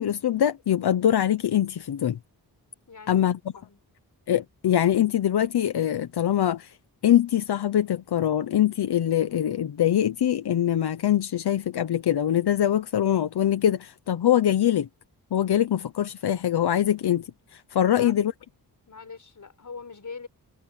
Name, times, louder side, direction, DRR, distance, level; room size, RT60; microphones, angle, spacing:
voice 1, 0.0-2.2 3.1-3.4 4.3-6.8 7.0-14.9 15.3-18.3, left 10 dB, 85° left, 1.0 m, -23 dB
voice 2, 2.9-3.3 3.5-3.8 17.8-18.1 18.9-20.3, left 5 dB, 50° left, 6.3 m, -42 dB
wide cardioid pair, 100°, 38 cm